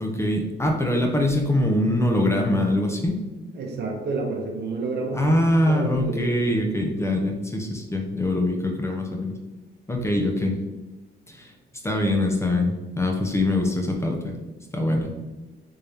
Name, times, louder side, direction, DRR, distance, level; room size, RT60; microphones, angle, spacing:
voice 1, 0.0-3.2 5.1-9.4 9.9-10.5 11.3-11.5 11.8-14.3 14.7-15.1, left 1 dB, 15° left, 1 dB, 0.6 m, -23 dB
voice 2, 3.5-5.3 5.7-6.4, right 3 dB, 60° right, 1 dB, 0.9 m, -29 dB
3.6 x 2.7 x 3.3 m, 1.1 s
cardioid pair, 90°, 20 cm